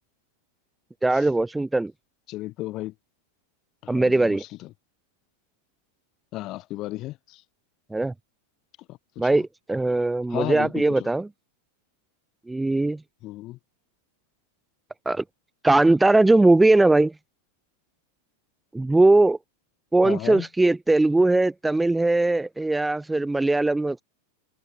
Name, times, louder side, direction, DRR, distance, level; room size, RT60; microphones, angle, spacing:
voice 1, 1.0-1.9 3.9-4.4 7.9-8.1 9.2-11.3 12.5-13.0 15.0-15.2 15.6-17.1 18.7-19.4 19.9-24.0, right 2 dB, 5° right, 1.1 m, -20 dB
voice 2, 2.3-2.9 3.8-4.7 6.3-7.4 8.9-9.3 10.3-11.1 13.2-13.6 20.0-20.5, left 17 dB, 35° left, 5.2 m, -34 dB
figure-of-eight pair, 90°, 0 cm